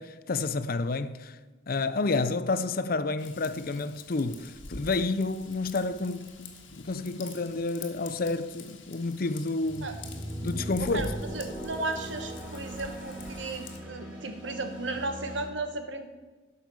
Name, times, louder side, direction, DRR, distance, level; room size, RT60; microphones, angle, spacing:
voice 1, 0.0-1.4 1.7-9.9 10.4-11.1, left 3 dB, 45° left, 0.5 m, -30 dB
Raindrop / Vehicle horn car horn honking / Trickle dribble, 3.2-13.8, left 3 dB, 75° left, 1.5 m, -46 dB
sound 1, 9.6-15.5, right 1 dB, 5° right, 3.0 m, -39 dB
voice 2, 11.3-16.1, right 2 dB, 70° right, 1.3 m, -35 dB
12.5 x 5.6 x 7.2 m
head